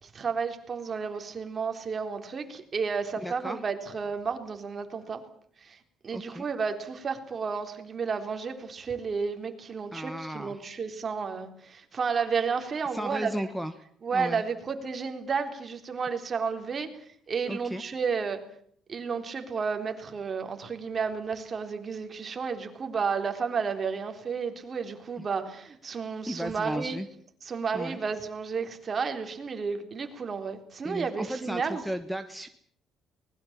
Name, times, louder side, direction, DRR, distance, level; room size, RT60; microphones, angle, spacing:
voice 1, 0.0-5.2 5.6-13.3 14.0-16.9 17.3-18.4 18.9-27.0 27.4-31.8, right 5 dB, 35° right, 6 dB, 3.8 m, -32 dB
voice 2, 3.2-3.6 6.1-6.5 9.9-10.7 12.9-13.7 14.1-14.4 17.5-17.8 25.2-25.3 26.3-27.1 27.7-28.0 30.8-32.5, equal, ahead, 6 dB, 1.3 m, -35 dB
24.0 x 20.5 x 7.5 m, 0.63 s
cardioid pair, 135°, 0 cm